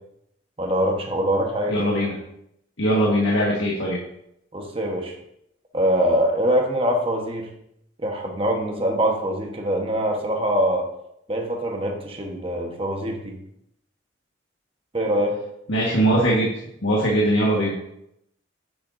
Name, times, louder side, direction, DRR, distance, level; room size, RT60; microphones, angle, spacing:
voice 1, 0.6-1.8 4.5-5.1 5.7-7.5 8.0-10.8 11.3-13.4 14.9-15.4, equal, 30° right, 1 dB, 1.2 m, -23 dB
voice 2, 1.7-2.2 2.8-4.0 15.7-16.5 16.8-17.7, right 1 dB, 90° left, -4 dB, 1.6 m, -20 dB
9.4 x 8.7 x 2.7 m, 0.77 s
head